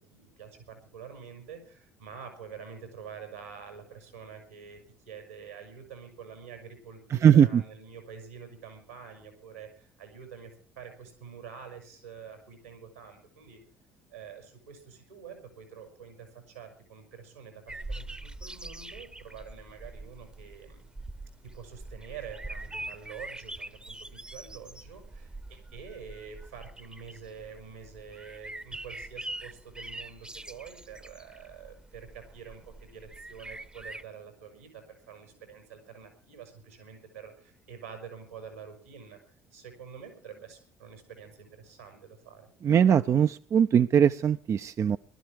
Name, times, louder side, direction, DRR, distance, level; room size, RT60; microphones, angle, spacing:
voice 1, 0.1-13.6 14.1-20.9 21.4-42.5, right 6 dB, 90° right, 5 dB, 5.3 m, -47 dB
voice 2, 7.1-7.6 42.6-45.0, right 8 dB, 40° right, 11 dB, 0.6 m, -21 dB
sound 1, 17.7-34.0, right 2 dB, 10° right, 0.9 m, -43 dB
19.5 x 12.5 x 4.7 m, 0.41 s
hypercardioid pair, 55°, 7 cm